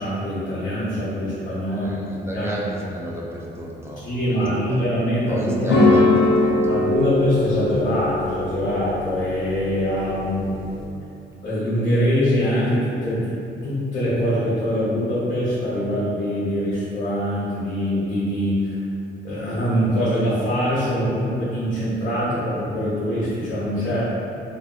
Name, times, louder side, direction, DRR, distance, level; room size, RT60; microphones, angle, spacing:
voice 1, 0.0-2.5 4.0-5.7 6.7-10.6 11.4-13.4 13.6-18.8 19.2-24.0, equal, 40° left, -9 dB, 0.9 m, -23 dB
voice 2, 1.7-4.8 5.3-6.8, equal, 15° right, -3 dB, 0.4 m, -32 dB
sound 1, 5.7-10.8, left 2 dB, 60° left, 0.6 m, -21 dB
2.8 x 2.7 x 2.3 m, 2.7 s
cardioid pair, 90°, 20 cm